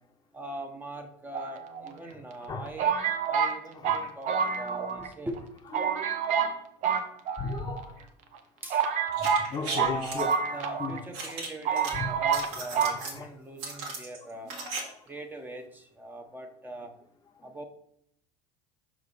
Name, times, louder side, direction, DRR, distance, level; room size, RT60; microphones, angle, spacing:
voice 1, 0.3-5.5 8.6-8.8 9.6-14.5 15.1-16.9 17.4-17.6, right 1 dB, 10° right, 1.0 m, -41 dB
sound 1, 1.3-2.1 2.8-5.1 5.4-5.5 5.7-6.6 6.8-7.8 8.3-8.4 8.7-11.0 11.3-11.4 11.7-12.5 12.8-13.0, right 7 dB, 55° right, 0.9 m, -28 dB
voice 2, 3.7-4.1 4.7-4.8 5.7-6.0 6.4-6.5 7.4-8.0 9.2-11.0 11.9-12.2 12.5-13.3 14.4-14.9 17.4-17.5, left 4 dB, 25° left, 0.8 m, -38 dB
sound 2, 9.1-10.3 11.1-11.9 12.2-13.2 13.6-14.8 15.1-15.2, right 3 dB, 80° right, 1.9 m, -37 dB
6.0 x 4.8 x 4.1 m
supercardioid pair, 105°, 15 cm